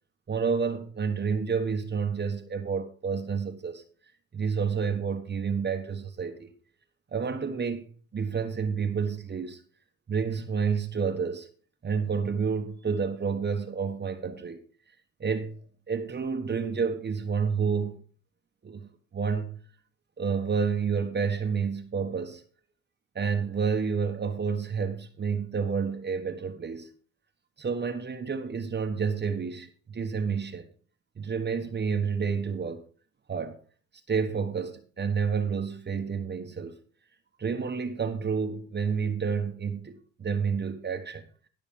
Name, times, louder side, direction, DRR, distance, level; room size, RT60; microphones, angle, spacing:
voice 1, 0.3-3.8 4.3-6.5 7.1-9.6 10.1-11.5 11.8-14.6 15.2-15.6 15.9-17.9 18.6-19.6 20.2-22.4 23.1-26.9 27.6-30.7 31.2-32.8 33.3-33.6 34.1-36.8 37.4-41.2, right 6 dB, 35° right, 1.3 m, -29 dB
12.5 x 6.2 x 5.3 m
cardioid pair, 90°, 30 cm